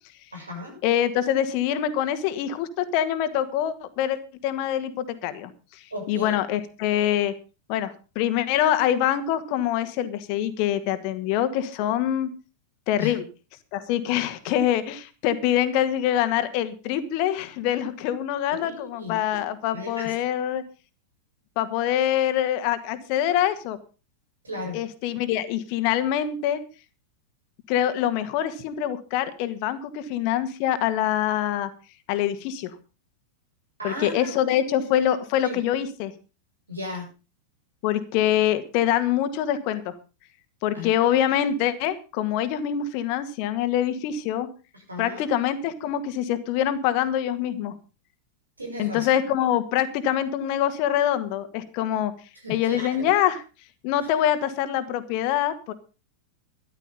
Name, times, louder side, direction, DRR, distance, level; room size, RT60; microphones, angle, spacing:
voice 1, 0.3-0.8 5.9-6.4 13.0-13.1 18.5-19.2 19.7-20.1 24.4-24.8 33.8-34.6 35.4-35.6 36.7-37.1 40.7-41.1 44.9-45.3 48.6-49.2 52.4-53.1 54.0-54.1, left 2 dB, 80° right, 3 dB, 7.2 m, -35 dB
voice 2, 0.8-7.3 7.7-12.3 12.9-13.2 13.7-20.6 21.6-23.8 24.7-26.6 27.7-31.7 32.1-32.7 33.8-36.1 37.8-39.9 40.6-44.5 45.0-47.7 48.8-52.1 52.5-53.4 53.8-55.7, left 11 dB, 45° left, 11 dB, 1.8 m, -25 dB
13.5 x 11.5 x 5.4 m, 0.33 s
figure-of-eight pair, 95°, 0 cm